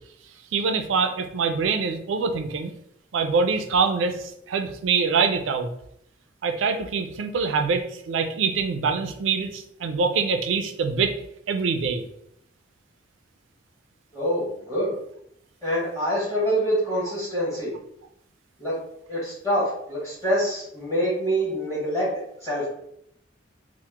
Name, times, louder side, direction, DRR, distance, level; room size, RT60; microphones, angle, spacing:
voice 1, 0.5-2.7 3.1-5.7 6.4-11.2 11.5-12.0, right 5 dB, 80° right, 7 dB, 0.4 m, -24 dB
voice 2, 14.1-14.9 15.6-17.7 18.6-18.8 19.1-22.1 22.4-22.7, equal, 15° left, -8 dB, 1.0 m, -25 dB
2.9 x 2.1 x 3.3 m, 0.73 s
head